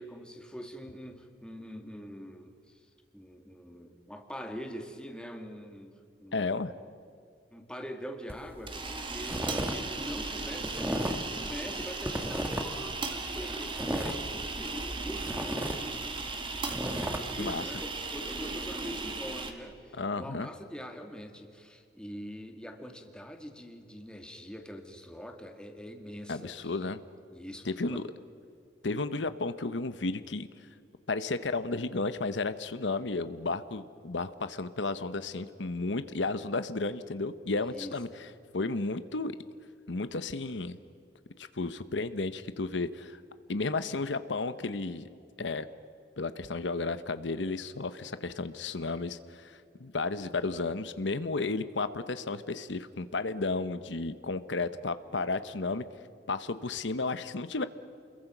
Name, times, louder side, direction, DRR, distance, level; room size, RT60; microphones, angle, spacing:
voice 1, 0.0-2.8 3.1-6.7 7.5-26.7 27.3-28.1 37.6-38.0, equal, 5° left, 4 dB, 2.0 m, -44 dB
voice 2, 6.3-6.7 17.4-17.6 20.0-20.5 26.3-27.0 27.6-28.1 28.8-30.5 31.1-39.4 39.9-40.8 41.4-43.2 43.5-45.0 45.4-45.7 46.2-55.8 56.3-57.7, left 3 dB, 90° left, 12 dB, 1.0 m, -33 dB
sound 1, 8.3-8.5 8.9-9.8 10.0-11.3 11.7-12.9 13.2-14.9 15.2-17.2, equal, 10° right, 1.5 m, -34 dB
sound 2, 8.5-19.5, right 3 dB, 30° right, 1.9 m, -37 dB
29.0 x 22.0 x 6.1 m, 2.4 s
head